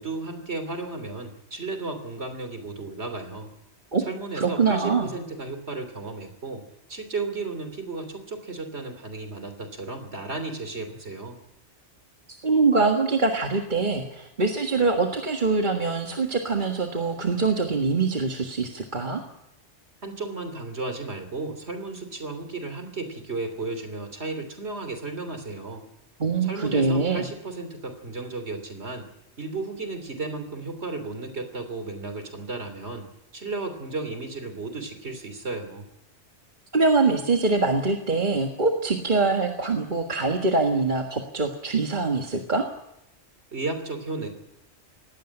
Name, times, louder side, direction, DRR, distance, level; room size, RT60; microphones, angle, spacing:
voice 1, 0.0-3.5 4.0-11.4 20.0-25.8 26.4-29.0 29.4-33.1 33.3-35.9 43.5-44.3, right 3 dB, 65° right, 8 dB, 3.5 m, -34 dB
voice 2, 4.4-5.1 12.4-19.2 26.2-27.2 36.7-42.7, right 3 dB, 40° right, 2 dB, 1.8 m, -23 dB
19.0 x 16.0 x 10.0 m, 0.86 s
omnidirectional pair, 1.2 m